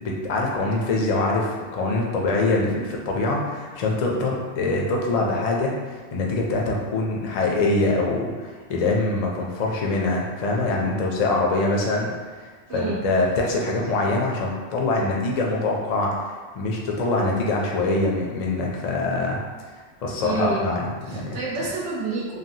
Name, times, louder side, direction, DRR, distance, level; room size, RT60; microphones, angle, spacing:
voice 1, 0.0-12.1 12.4-19.4 19.7-21.4, left 2 dB, 55° left, -1 dB, 0.4 m, -24 dB
voice 2, 12.7-13.0 20.2-20.7 21.1-22.4, right 4 dB, 85° right, -5 dB, 1.1 m, -28 dB
3.2 x 2.2 x 2.7 m, 1.5 s
omnidirectional pair, 1.2 m